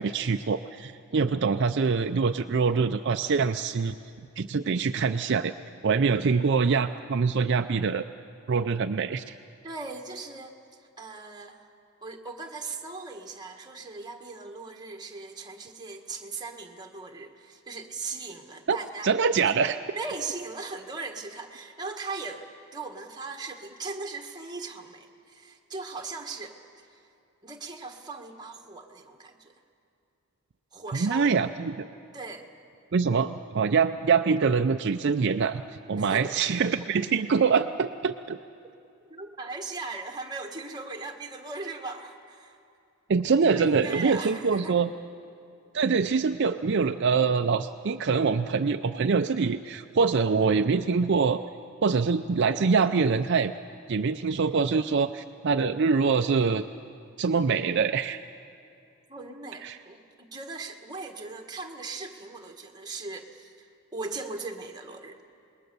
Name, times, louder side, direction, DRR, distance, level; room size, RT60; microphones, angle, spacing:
voice 1, 0.0-4.0 4.4-5.5 5.8-8.0 8.5-9.3 18.7-18.8 19.0-19.8 30.9-31.8 32.9-35.6 35.9-38.4 43.1-44.9 45.7-51.4 51.8-53.5 53.9-56.6 57.2-58.2 59.6-59.8, right 5 dB, 55° right, 7 dB, 0.5 m, -24 dB
voice 2, 9.6-10.5 11.0-11.6 12.0-19.1 19.4-19.5 19.9-22.5 22.7-26.6 26.9-27.0 27.4-29.5 30.7-31.5 32.1-32.5 36.0-36.3 39.1-42.6 43.6-44.8 59.1-63.7 63.9-65.2, right 3 dB, 20° right, 3 dB, 1.5 m, -39 dB
27.0 x 21.0 x 6.9 m, 2.5 s
head